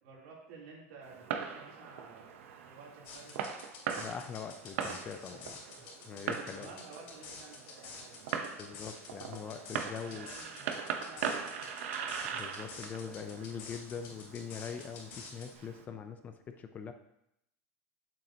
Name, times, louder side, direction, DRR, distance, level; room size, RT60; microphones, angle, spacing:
voice 1, 0.0-2.4 2.6-3.5 6.5-8.4 10.0-11.8, right 4 dB, 75° right, -4 dB, 3.3 m, -53 dB
Fireworks, 1.0-15.8, right 7 dB, 90° right, 0.9 m, -41 dB
sound 1, 3.0-15.5, left 4 dB, 75° left, 3.0 m, -49 dB
voice 2, 4.0-5.6 6.1-6.7 8.6-10.3 12.3-16.9, left 6 dB, 25° left, 7 dB, 0.5 m, -42 dB
8.1 x 7.5 x 2.9 m, 0.80 s
supercardioid pair, 155°, 7 cm